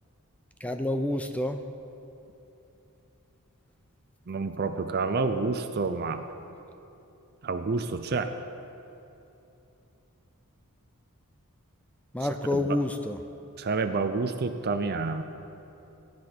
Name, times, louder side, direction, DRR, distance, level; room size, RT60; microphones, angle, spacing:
voice 1, 0.6-1.6 12.1-13.2, left 1 dB, 5° left, 7 dB, 0.4 m, -28 dB
voice 2, 4.3-6.2 7.4-8.3 12.5-12.6 13.6-15.2, right 4 dB, 45° right, 8 dB, 0.5 m, -28 dB
15.0 x 10.5 x 5.9 m, 2.9 s
head